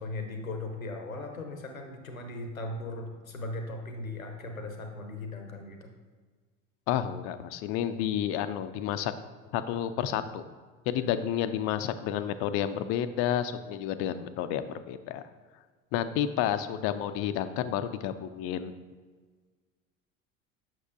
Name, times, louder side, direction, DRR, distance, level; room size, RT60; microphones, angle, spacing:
voice 1, 0.0-5.9, left 2 dB, 90° left, 4 dB, 0.7 m, -38 dB
voice 2, 6.9-9.1 9.5-10.4 10.9-15.2 15.9-18.7, left 10 dB, 35° left, 10 dB, 0.4 m, -30 dB
7.2 x 6.0 x 2.5 m, 1.5 s
figure-of-eight pair, 65°, 40 cm